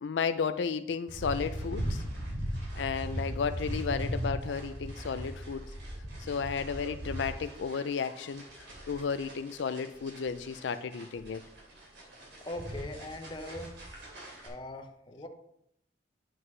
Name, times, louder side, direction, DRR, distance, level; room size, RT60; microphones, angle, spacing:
voice 1, 0.0-2.0 2.7-5.7 6.2-11.4, left 6 dB, 85° left, 11 dB, 0.4 m, -33 dB
sound 1, 1.1-14.5, equal, 75° right, 2.8 m, -39 dB
voice 2, 12.4-13.7 14.4-15.3, left 1 dB, 25° left, 4 dB, 0.9 m, -41 dB
9.5 x 7.7 x 3.2 m, 0.76 s
head